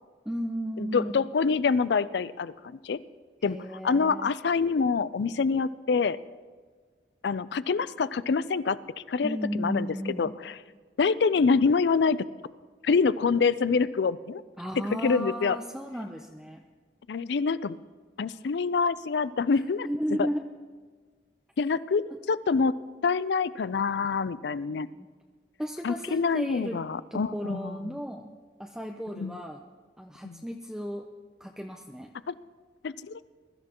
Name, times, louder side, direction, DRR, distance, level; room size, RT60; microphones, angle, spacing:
voice 1, 0.3-1.3 3.4-4.3 9.2-10.4 14.6-16.7 19.5-20.5 22.1-22.2 24.9-25.1 25.6-26.8 27.1-28.3 28.6-29.6 30.0-31.1 31.4-32.1, equal, 5° right, 2 dB, 0.5 m, -34 dB
voice 2, 0.8-2.5 2.8-3.0 3.4-3.6 3.8-6.2 7.2-8.8 9.1-9.9 10.2-10.3 11.0-12.3 12.8-14.4 15.0-15.6 17.1-17.8 18.2-19.9 21.6-24.9 25.8-27.9 29.2-29.3 30.2-30.4 32.3-32.4 32.8-33.2, left 5 dB, 75° left, 17 dB, 0.4 m, -26 dB
22.0 x 13.5 x 3.0 m, 1.5 s
head